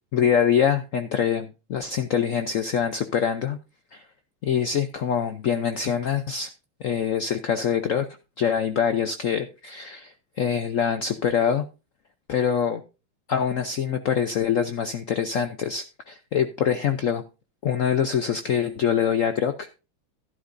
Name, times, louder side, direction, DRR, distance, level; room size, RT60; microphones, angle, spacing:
voice 1, 0.1-3.6 3.9-4.0 4.4-6.5 6.8-8.1 8.4-11.7 12.3-12.8 13.3-17.2 17.6-19.8, left 8 dB, 80° left, 9 dB, 0.7 m, -24 dB
12.5 x 11.0 x 2.6 m, 0.31 s
omnidirectional pair, 2.2 m